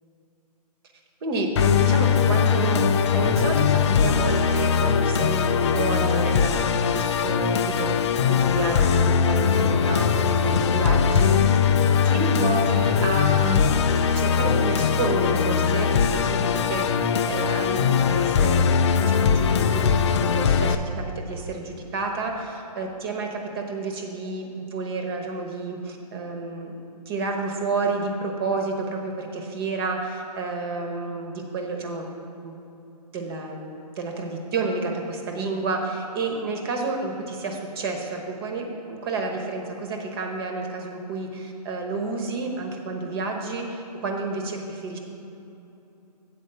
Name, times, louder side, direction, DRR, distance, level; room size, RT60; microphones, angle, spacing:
voice 1, 1.2-2.8 3.1-8.0 8.3-11.7 12.0-13.6 14.1-18.6 19.0-20.8 21.2-26.7 27.1-32.1 32.4-32.6 33.1-45.0, right 3 dB, 35° right, 3 dB, 1.0 m, -30 dB
Musical instrument, 1.6-20.8, left 6 dB, 45° left, 0.4 m, -21 dB
8.3 x 4.8 x 6.6 m, 2.9 s
hypercardioid pair, 150°, 21 cm